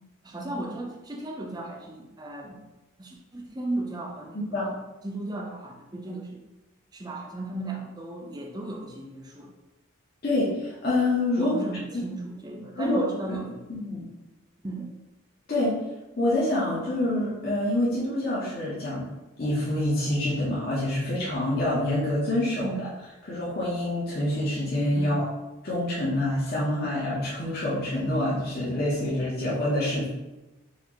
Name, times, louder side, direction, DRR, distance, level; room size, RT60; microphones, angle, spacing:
voice 1, 0.2-2.6 3.0-4.8 5.0-6.4 6.9-9.5 11.4-13.6 14.6-14.9 22.6-22.9 24.9-25.2, right 2 dB, 20° right, 1 dB, 0.5 m, -35 dB
voice 2, 4.3-4.7 10.2-11.6 11.9-12.0 12.7-13.0 13.3-13.4 13.7-14.0 15.5-15.7 16.2-19.1 19.4-22.9 23.2-25.2 25.6-30.1, left 1 dB, 45° left, -7 dB, 0.8 m, -26 dB
4.1 x 2.5 x 3.0 m, 1.1 s
head